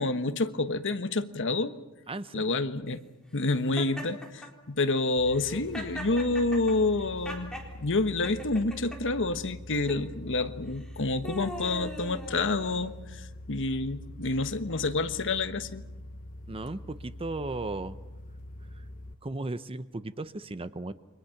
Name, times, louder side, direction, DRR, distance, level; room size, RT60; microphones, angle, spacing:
voice 1, 0.0-1.8 2.3-3.0 3.3-7.5 7.8-15.8, left 3 dB, 60° left, 10 dB, 1.2 m, -28 dB
voice 2, 2.1-2.4 16.5-18.0 18.8-18.9 19.2-20.9, right 2 dB, 25° right, 13 dB, 0.8 m, -36 dB
Laughter, 3.8-4.5 5.3-7.7 8.2-9.0 9.7-10.0 10.8-13.0, left 1 dB, 5° left, 4.0 m, -41 dB
sound 1, 5.2-19.1, left 1 dB, 40° left, 0.9 m, -44 dB
28.5 x 24.5 x 5.9 m, 1.0 s
head